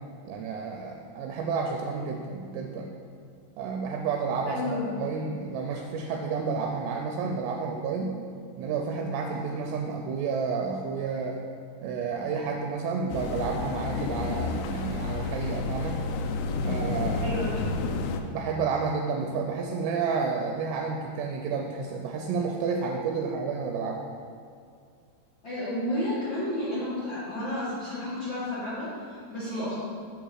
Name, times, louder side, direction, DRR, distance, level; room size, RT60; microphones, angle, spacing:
voice 1, 0.3-2.9 3.6-8.2 8.6-11.4 11.8-16.0 16.6-17.4 18.2-24.0, right 5 dB, 85° right, 2 dB, 2.6 m, -30 dB
voice 2, 4.4-5.0 17.2-17.6 25.4-29.7, left 1 dB, 65° left, -11 dB, 1.1 m, -31 dB
sound 1, 13.1-18.2, left 3 dB, 85° left, 2.7 m, -30 dB
7.5 x 4.0 x 6.3 m, 2.4 s
omnidirectional pair, 5.0 m